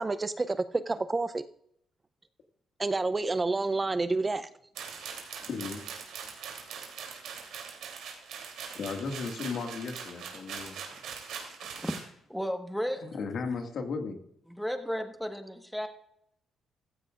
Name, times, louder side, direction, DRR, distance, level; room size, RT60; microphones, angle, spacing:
voice 1, 0.0-1.4 2.8-4.5, right 3 dB, 25° right, 0.5 m, -29 dB
sound 1, 4.8-12.1, right 6 dB, 85° right, 3.1 m, -42 dB
voice 2, 5.4-5.8 8.7-10.8 11.4-11.5 13.0-14.2, left 4 dB, 60° left, 1.9 m, -35 dB
voice 3, 11.6-12.0 12.3-13.2 14.5-15.9, equal, ahead, 1.4 m, -34 dB
15.0 x 14.5 x 2.5 m
cardioid pair, 90°, 0 cm